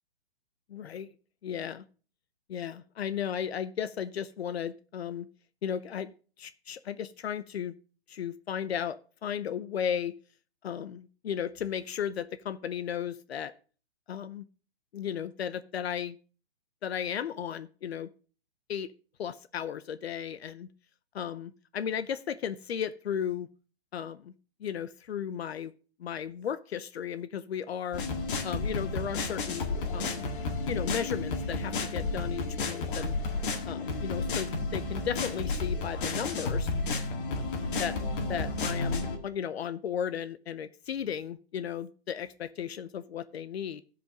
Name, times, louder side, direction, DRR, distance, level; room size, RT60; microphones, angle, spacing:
voice 1, 0.7-1.1 1.4-1.8 2.5-5.3 5.6-6.1 6.4-7.8 8.1-10.2 10.6-13.5 14.1-14.4 14.9-16.2 16.8-18.1 18.7-18.9 19.2-20.7 21.1-23.5 23.9-24.3 24.6-25.7 26.0-28.1 28.4-30.3 30.7-33.1 33.7-36.7 37.4-38.0 38.3-43.8, left 8 dB, 70° left, 13 dB, 0.8 m, -35 dB
sound 1, 27.9-39.2, left 3 dB, 55° left, 2.0 m, -32 dB
14.0 x 5.2 x 5.1 m, 0.39 s
hypercardioid pair, 150°, 32 cm